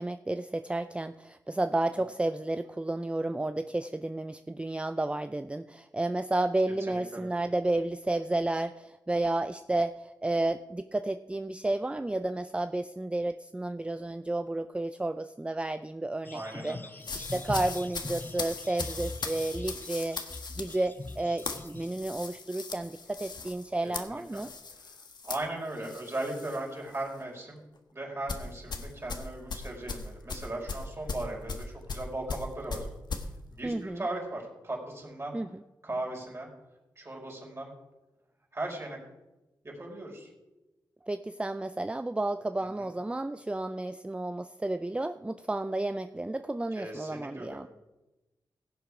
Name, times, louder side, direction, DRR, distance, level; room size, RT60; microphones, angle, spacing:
voice 1, 0.0-24.5 33.6-34.0 35.3-35.6 41.0-47.7, right 2 dB, 15° right, 10 dB, 0.4 m, -32 dB
voice 2, 6.7-7.3 16.3-16.9 23.8-24.4 25.2-27.6 27.9-32.9 33.5-35.4 35.8-36.5 37.0-37.7 38.5-39.0 39.6-40.3 42.6-42.9 46.7-47.6, right 2 dB, 30° right, -2 dB, 4.9 m, -38 dB
sound 1, 16.2-21.9, left 2 dB, 25° left, 0.7 m, -42 dB
sound 2, 17.0-26.6 26.9-27.2 28.3-33.3, left 4 dB, 60° left, 1.3 m, -39 dB
16.5 x 7.3 x 4.9 m, 1.1 s
cardioid pair, 50°, 8 cm